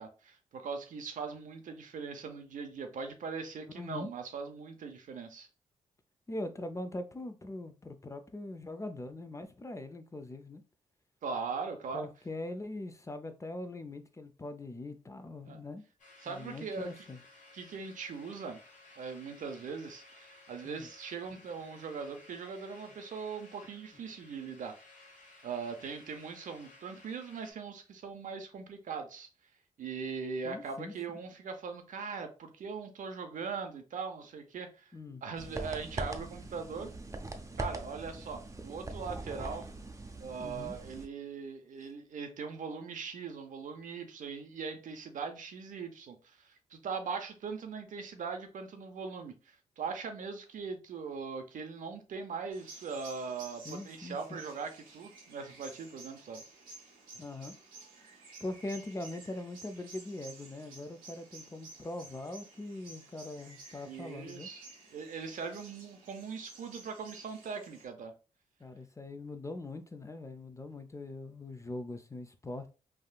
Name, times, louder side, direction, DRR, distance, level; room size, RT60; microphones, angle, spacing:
voice 1, 0.0-5.5 11.2-12.1 15.5-15.6 16.2-17.0 17.5-18.6 19.0-24.8 25.4-29.3 29.8-34.9 35.2-36.9 37.6-39.7 40.2-56.4 63.8-64.6 64.9-68.1, right 5 dB, 65° right, 0.6 m, -40 dB
voice 2, 3.8-4.1 6.3-10.6 11.9-15.8 16.3-17.2 20.6-20.9 30.4-31.2 34.9-35.2 40.4-40.8 53.6-54.4 57.2-57.6 58.4-64.5 68.6-72.7, left 2 dB, 20° left, 0.4 m, -42 dB
sound 1, 16.0-27.5, left 2 dB, 65° left, 1.2 m, -57 dB
sound 2, 35.4-41.1, right 2 dB, 20° right, 0.6 m, -41 dB
sound 3, 52.5-67.9, right 3 dB, 85° right, 1.0 m, -53 dB
3.5 x 2.3 x 2.2 m
supercardioid pair, 50°, 14 cm